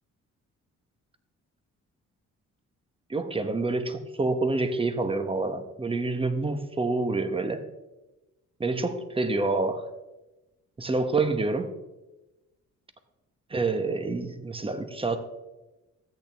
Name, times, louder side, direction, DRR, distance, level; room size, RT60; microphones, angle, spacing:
voice 1, 3.1-7.6 8.6-9.9 10.8-11.7 13.5-15.2, right 3 dB, 20° right, 9 dB, 1.1 m, -27 dB
13.0 x 8.5 x 3.5 m, 1.0 s
cardioid pair, 90°, 30 cm